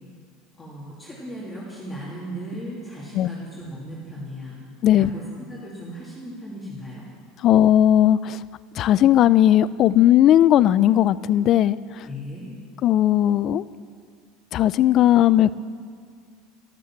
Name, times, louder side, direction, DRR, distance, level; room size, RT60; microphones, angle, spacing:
voice 1, 0.6-4.6 4.9-5.2 5.5-7.1 12.0-12.5, equal, 10° left, -7 dB, 2.9 m, -36 dB
voice 2, 7.4-8.4 8.8-12.1 12.8-13.7 14.5-15.5, left 12 dB, 40° left, 17 dB, 0.4 m, -17 dB
13.0 x 12.0 x 7.4 m, 2.1 s
supercardioid pair, 150°, 0 cm